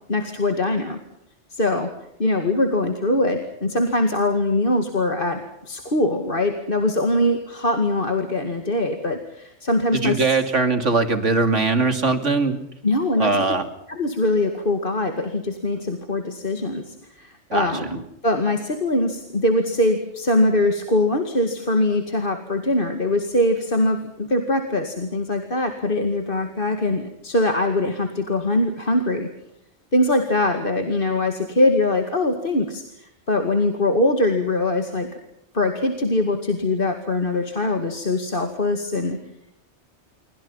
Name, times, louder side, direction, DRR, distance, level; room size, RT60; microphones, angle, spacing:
voice 1, 0.1-1.0 1.5-1.9 2.2-10.4 12.8-13.3 13.9-29.3 29.9-35.1 35.5-39.2, left 2 dB, 45° left, 5 dB, 2.4 m, -22 dB
voice 2, 9.9-12.6 13.2-13.6 17.5-18.0, right 3 dB, 85° right, 8 dB, 3.0 m, -21 dB
28.0 x 24.5 x 5.7 m, 0.80 s
omnidirectional pair, 1.2 m